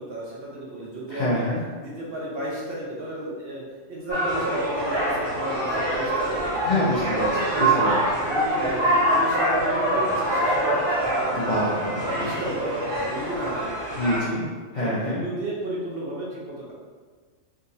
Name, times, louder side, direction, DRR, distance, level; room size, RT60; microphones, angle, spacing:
voice 1, 0.0-1.5 1.8-3.6 3.9-6.8 7.5-7.9 8.2-11.7 12.1-13.8 14.8-16.7, right 1 dB, 55° right, -5 dB, 0.8 m, -33 dB
voice 2, 1.1-1.6 6.6-7.9 11.3-12.3 14.0-14.4 14.7-15.2, left 1 dB, 55° left, -7 dB, 0.5 m, -26 dB
sound 1, 4.1-14.2, right 1 dB, 25° right, 0.6 m, -24 dB
3.6 x 2.8 x 2.7 m, 1.5 s
omnidirectional pair, 1.3 m